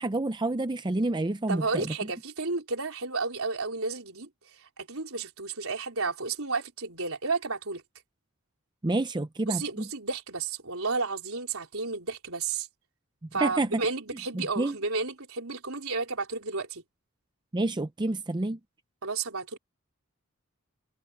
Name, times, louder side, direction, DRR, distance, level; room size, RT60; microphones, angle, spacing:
voice 1, 0.0-1.9 8.8-9.8 13.4-13.9 14.3-14.8 17.5-18.6, right 2 dB, 20° right, 0.5 m, -28 dB
voice 2, 1.5-4.3 4.8-7.8 9.5-12.7 13.3-16.8 19.0-19.6, right 4 dB, 70° right, 4.1 m, -32 dB
head